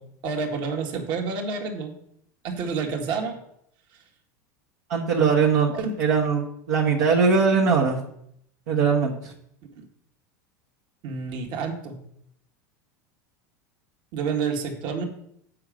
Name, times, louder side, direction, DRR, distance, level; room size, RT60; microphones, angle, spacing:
voice 1, 0.0-1.9 2.4-3.4 5.7-5.9 9.8-9.9 11.0-12.0 14.1-15.0, right 5 dB, 55° right, 3 dB, 1.8 m, -29 dB
voice 2, 4.9-5.7 6.0-8.0 8.7-9.1, right 5 dB, 70° right, -3 dB, 1.4 m, -20 dB
7.7 x 5.0 x 6.3 m, 0.72 s
hypercardioid pair, 105°, 9 cm